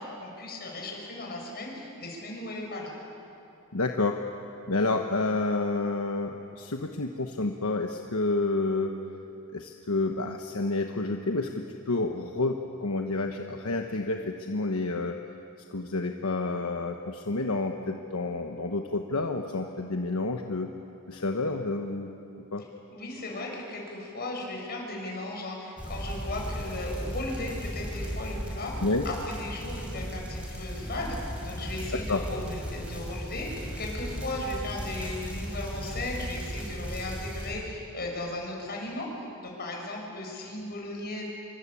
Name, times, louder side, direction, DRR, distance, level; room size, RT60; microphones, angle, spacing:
voice 1, 0.0-2.9 22.9-39.1 39.4-41.2, left 2 dB, 45° left, 0 dB, 6.8 m, -36 dB
voice 2, 3.7-4.2 4.7-9.0 9.5-15.2 15.7-20.7 21.1-22.1 22.5-22.6 28.8-29.0 31.9-32.2, left 3 dB, 75° left, 3 dB, 1.2 m, -29 dB
sound 1, 25.8-37.5, equal, 5° right, 6.1 m, -36 dB
27.0 x 24.0 x 8.6 m, 2.8 s
head